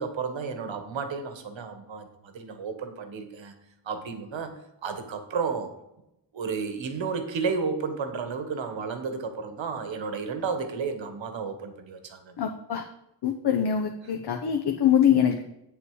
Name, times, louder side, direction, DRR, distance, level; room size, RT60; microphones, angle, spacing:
voice 1, 0.0-3.5 3.8-4.5 4.8-5.7 6.3-12.4, right 5 dB, 80° right, 8 dB, 1.5 m, -32 dB
voice 2, 12.4-12.8 13.2-15.4, left 9 dB, 60° left, 4 dB, 0.9 m, -23 dB
8.5 x 7.5 x 4.8 m, 0.87 s
wide cardioid pair, 125°, 45 cm